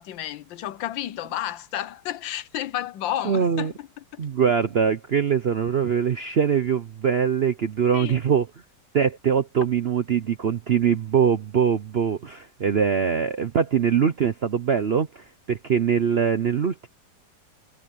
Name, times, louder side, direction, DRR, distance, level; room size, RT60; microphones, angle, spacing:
voice 1, 0.0-4.2 7.9-8.2, left 12 dB, 85° left, 1.5 m, -32 dB
voice 2, 3.2-3.7 4.2-8.5 8.9-16.9, right 7 dB, 60° right, 0.6 m, -22 dB
omnidirectional pair, 2.0 m